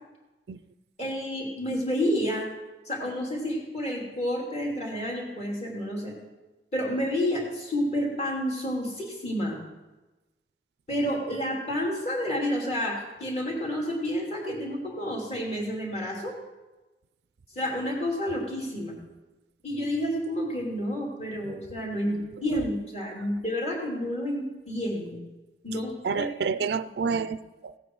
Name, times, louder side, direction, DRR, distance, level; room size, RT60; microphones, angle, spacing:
voice 1, 1.0-2.5 2.9-6.1 6.7-9.6 10.9-16.3 17.5-18.9 19.6-25.2 25.6-26.3 26.5-26.6 27.1-27.2, equal, 40° left, -2 dB, 3.1 m, -30 dB
voice 2, 26.0-27.8, right 5 dB, 65° right, 15 dB, 0.4 m, -29 dB
16.0 x 9.1 x 4.7 m, 1.1 s
head